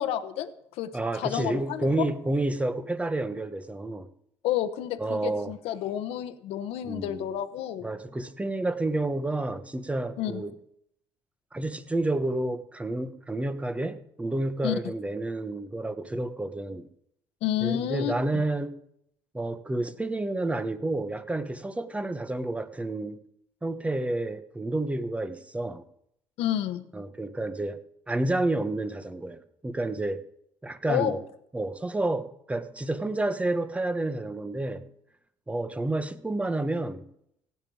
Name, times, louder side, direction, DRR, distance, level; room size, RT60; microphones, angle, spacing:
voice 1, 0.0-1.9 4.4-7.9 10.2-10.4 14.6-14.8 17.4-18.1 26.4-26.8 30.9-31.2, left 11 dB, 75° left, 11 dB, 1.0 m, -30 dB
voice 2, 0.9-4.1 5.0-5.5 6.9-7.3 7.8-10.5 11.5-16.9 17.6-18.8 19.3-23.2 23.6-25.8 26.9-27.8 28.1-30.2 30.6-31.2 31.5-34.9 35.5-37.0, right 2 dB, 15° right, 12 dB, 1.0 m, -30 dB
15.5 x 5.4 x 8.7 m, 0.75 s
supercardioid pair, 85°, 10 cm